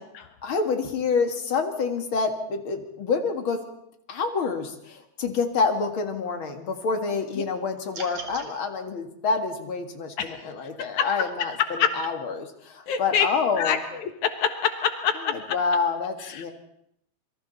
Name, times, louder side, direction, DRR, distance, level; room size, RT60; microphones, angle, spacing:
voice 1, 0.4-3.6 4.1-13.8 15.3-16.5, left 4 dB, 45° left, 5 dB, 2.5 m, -27 dB
sound 1, 7.9-8.5, right 4 dB, 60° right, 3.9 m, -38 dB
voice 2, 12.9-13.3 13.5-13.8 14.2-15.1 16.3-16.5, left 8 dB, 80° left, 7 dB, 2.8 m, -25 dB
27.0 x 23.5 x 4.2 m, 0.77 s
omnidirectional pair, 3.4 m